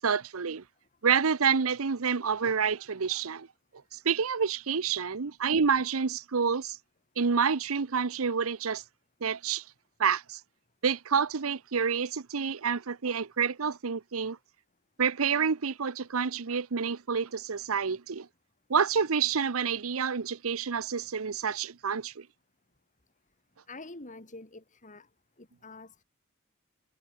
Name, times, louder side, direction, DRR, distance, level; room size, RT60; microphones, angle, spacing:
voice 1, 0.0-0.6 1.0-3.5 3.9-6.8 7.2-8.8 9.2-9.6 10.0-10.4 10.8-14.4 15.0-18.3 18.7-22.3, right 6 dB, 85° right, 0.8 m, -28 dB
voice 2, 23.7-25.1 25.4-26.0, left 2 dB, 35° left, 3.2 m, -46 dB
head